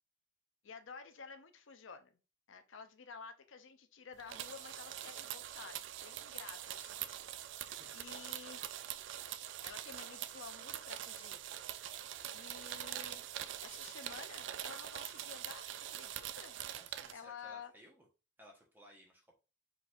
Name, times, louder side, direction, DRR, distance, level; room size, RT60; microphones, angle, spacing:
voice 1, 0.6-2.1 2.5-7.1 7.9-8.6 9.6-11.4 12.3-13.3 13.6-16.5 17.1-17.7, left 5 dB, 85° left, 9 dB, 0.6 m, -52 dB
sound 1, 4.2-17.1, right 11 dB, 70° right, 0.3 m, -44 dB
voice 2, 7.6-8.1 16.6-18.1 18.4-19.4, equal, 10° right, -1 dB, 1.1 m, -60 dB
4.5 x 4.0 x 2.5 m, 0.31 s
head